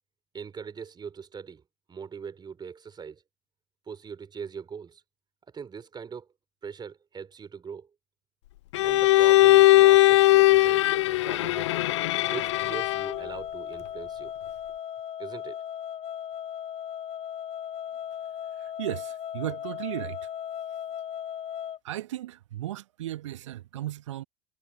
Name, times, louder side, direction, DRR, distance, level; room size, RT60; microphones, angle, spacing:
voice 1, 0.3-1.6 1.9-3.2 3.9-5.0 5.5-6.3 6.6-7.9 8.8-11.7 12.3-14.3 15.2-15.6, right 6 dB, 25° right, 4.1 m, -41 dB
Bowed string instrument, 8.7-13.3, left 17 dB, 65° left, 0.5 m, -19 dB
sound 1, 11.5-21.8, left 9 dB, 35° left, 6.6 m, -37 dB
voice 2, 18.5-20.3 21.8-24.2, right 13 dB, 70° right, 1.5 m, -35 dB
figure-of-eight pair, 70°, 16 cm